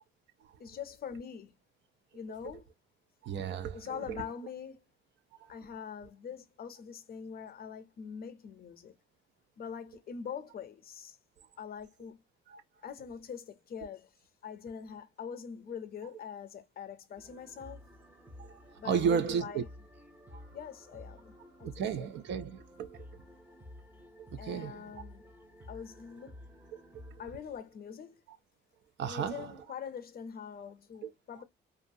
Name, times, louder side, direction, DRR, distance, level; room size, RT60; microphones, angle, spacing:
voice 1, 0.6-1.5 2.1-2.6 3.7-4.8 5.5-8.9 9.6-11.2 11.6-12.2 12.8-14.1 14.4-17.9 18.8-19.7 20.5-21.7 22.0-22.1 24.4-25.3 25.7-26.4 27.2-28.2 29.0-31.4, left 7 dB, 50° left, 0.6 m, -43 dB
voice 2, 3.2-4.3 5.4-5.5 12.5-12.6 18.4-19.6 20.3-20.4 21.6-23.2 24.2-24.9 27.1-27.2 29.0-29.6 31.0-31.1, right 7 dB, 65° right, 0.4 m, -34 dB
sound 1, 17.2-27.3, left 1 dB, 10° right, 0.6 m, -52 dB
2.6 x 2.4 x 2.6 m
cardioid pair, 90°, 20 cm